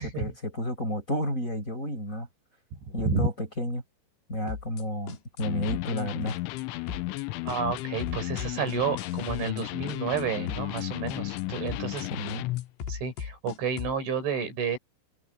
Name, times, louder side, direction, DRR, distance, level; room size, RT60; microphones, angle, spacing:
voice 1, 0.0-2.3 2.9-3.8 4.3-6.4 12.1-12.4, equal, 15° left, 7.8 m, -31 dB
voice 2, 2.9-3.3 7.4-12.1 12.9-14.8, right 5 dB, 70° right, 8.0 m, -30 dB
sound 1, 4.5-4.8 5.1-5.4 5.7-6.0 6.3-6.6 6.9-7.2 7.5-9.6 9.9-10.2 10.5-10.8 11.1-11.4 11.7-12.0 12.3-14.0, left 6 dB, 60° left, 4.4 m, -38 dB
Electric guitar, 5.4-12.7, left 19 dB, 80° left, 3.1 m, -34 dB
open air
omnidirectional pair, 5.7 m